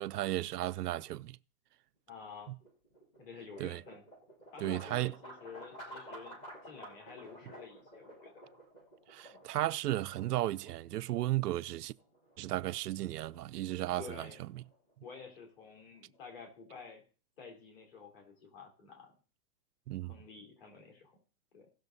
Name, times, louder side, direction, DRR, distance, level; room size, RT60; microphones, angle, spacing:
voice 1, 0.0-1.4 3.6-3.8 4.6-5.1 9.1-11.9 12.4-14.5 19.9-20.2, right 15 dB, 85° right, 0.6 m, -34 dB
voice 2, 2.1-2.5 3.2-4.0 4.5-8.5 9.3-9.4 14.0-14.4 15.0-17.0 17.4-19.1 20.0-21.2 21.5-21.7, left 5 dB, 35° left, 3.4 m, -50 dB
sound 1, 2.3-16.3, right 1 dB, 10° left, 1.2 m, -54 dB
16.5 x 6.4 x 4.0 m
hypercardioid pair, 175°, 46 cm